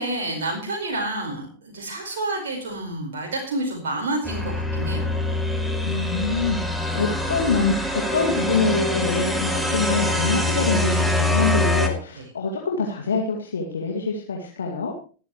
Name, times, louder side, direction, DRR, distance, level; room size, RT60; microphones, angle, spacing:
voice 1, 0.0-5.1 12.1-12.3, right 2 dB, 60° right, 0 dB, 4.9 m, -29 dB
sound 1, 4.2-11.9, left 1 dB, 5° right, 2.7 m, -24 dB
voice 2, 5.8-14.9, left 4 dB, 70° left, 0 dB, 2.3 m, -25 dB
25.5 x 10.0 x 3.2 m, 0.37 s
figure-of-eight pair, 90°, 0 cm